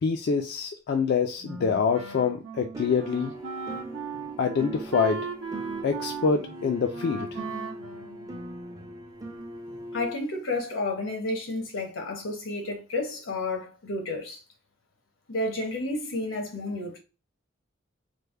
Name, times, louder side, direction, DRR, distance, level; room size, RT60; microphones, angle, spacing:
voice 1, 0.0-3.3 4.4-5.3 5.8-7.4, left 5 dB, 55° left, 0.3 m, -26 dB
Wind instrument woodwind instrument, 1.4-8.9, right 5 dB, 85° right, 0.7 m, -38 dB
sound 1, 2.7-10.1, right 1 dB, 20° right, 0.5 m, -40 dB
voice 2, 9.9-14.4 15.3-17.0, left 2 dB, 85° left, 1.0 m, -31 dB
3.4 x 2.1 x 3.2 m
head